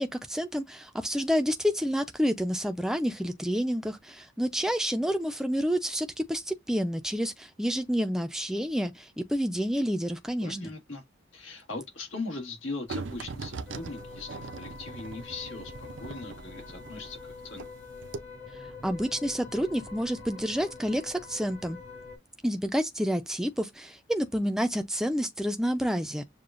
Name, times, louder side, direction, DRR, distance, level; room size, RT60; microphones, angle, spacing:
voice 1, 0.0-10.7 18.8-21.8 22.4-26.2, equal, 5° right, 0.4 m, -29 dB
voice 2, 10.4-11.0 11.3-17.6, left 3 dB, 90° left, 1.6 m, -39 dB
sound 1, 12.9-17.7 18.0-18.2, right 4 dB, 70° right, 0.5 m, -40 dB
sound 2, 13.7-22.2, left 3 dB, 60° left, 2.0 m, -45 dB
6.7 x 2.2 x 2.4 m
head